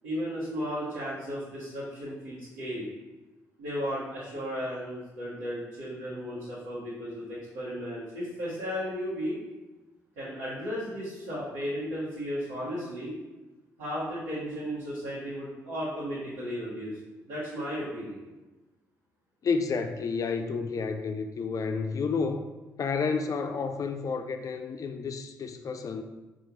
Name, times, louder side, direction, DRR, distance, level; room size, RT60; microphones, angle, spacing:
voice 1, 0.0-2.9 3.6-9.4 10.2-13.1 13.8-17.0 17.3-18.2, equal, 75° right, -10 dB, 1.0 m, -35 dB
voice 2, 19.4-22.5 22.8-26.0, left 5 dB, 45° left, 7 dB, 0.3 m, -30 dB
4.5 x 2.3 x 2.8 m, 1.1 s
hypercardioid pair, 40°, 8 cm